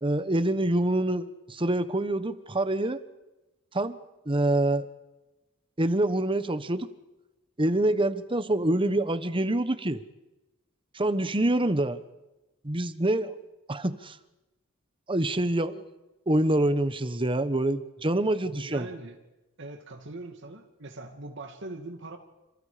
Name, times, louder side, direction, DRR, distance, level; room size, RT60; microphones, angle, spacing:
voice 1, 0.0-3.0 3.7-4.0 4.3-4.9 5.8-6.9 7.6-10.0 10.9-12.0 12.6-13.3 13.7-14.2 15.1-15.9 16.3-18.9, right 1 dB, 25° right, 12 dB, 1.3 m, -26 dB
voice 2, 18.4-19.2 19.6-22.2, right 2 dB, 65° right, 5 dB, 2.4 m, -41 dB
28.5 x 27.5 x 5.1 m, 1.0 s
head